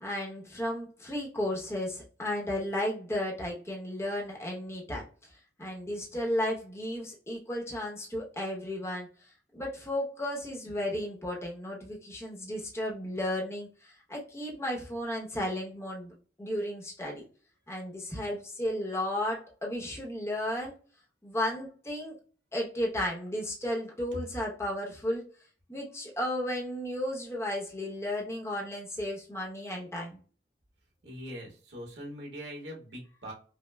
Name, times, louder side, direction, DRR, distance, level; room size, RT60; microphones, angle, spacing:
voice 1, 0.0-5.0 5.6-9.1 9.5-16.1 16.4-17.2 17.7-20.7 21.2-22.2 22.5-25.2 25.7-30.2, left 1 dB, 15° left, -2 dB, 0.8 m, -34 dB
voice 2, 31.0-33.3, equal, 85° right, 0 dB, 1.3 m, -42 dB
5.1 x 2.1 x 2.2 m, 0.40 s
head